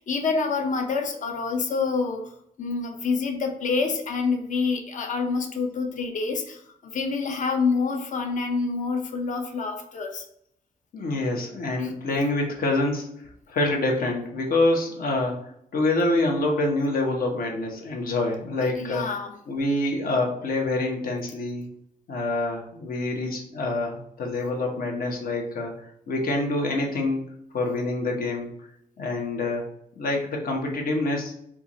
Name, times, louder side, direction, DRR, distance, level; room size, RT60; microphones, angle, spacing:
voice 1, 0.0-2.2 2.6-10.2 11.8-11.9 18.6-19.3, left 4 dB, 55° left, 4 dB, 0.7 m, -27 dB
voice 2, 10.9-13.1 13.5-21.7 22.1-27.3 27.5-28.5 29.0-29.6 29.9-31.3, left 2 dB, 70° left, 0 dB, 1.1 m, -26 dB
4.5 x 2.5 x 4.2 m, 0.72 s
wide cardioid pair, 175°, 15 cm